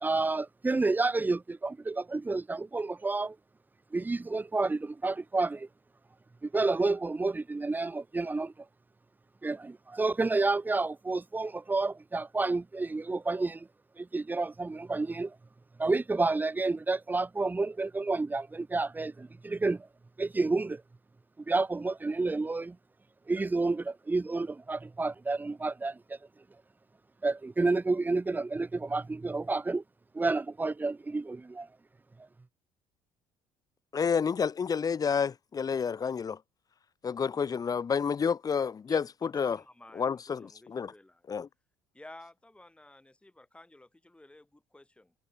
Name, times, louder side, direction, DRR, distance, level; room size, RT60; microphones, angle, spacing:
voice 1, 0.0-3.4 3.9-5.7 6.4-8.5 9.4-13.7 14.0-15.3 15.8-19.9 20.2-20.8 21.5-22.8 23.3-26.0 27.2-29.8 30.1-31.7, right 3 dB, 15° right, 1.0 m, -30 dB
voice 2, 33.9-36.4 37.0-39.6 39.9-40.9 41.3-41.5, left 6 dB, 35° left, 1.1 m, -29 dB
voice 3, 38.9-41.2 41.9-45.1, left 1 dB, 10° left, 3.4 m, -52 dB
supercardioid pair, 75°, 11 cm